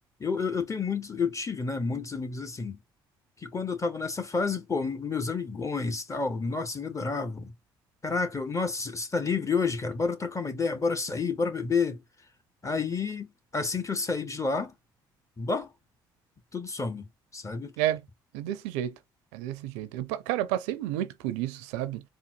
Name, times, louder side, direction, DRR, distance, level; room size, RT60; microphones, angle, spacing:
voice 1, 0.2-2.8 3.4-7.5 8.0-12.0 12.6-13.3 13.5-14.7 15.4-15.7 16.5-17.0 17.3-17.7, left 4 dB, 25° left, 1.1 m, -30 dB
voice 2, 18.3-18.9 19.3-22.0, right 13 dB, 80° right, 0.4 m, -30 dB
3.9 x 2.1 x 2.8 m
hypercardioid pair, 50°, 11 cm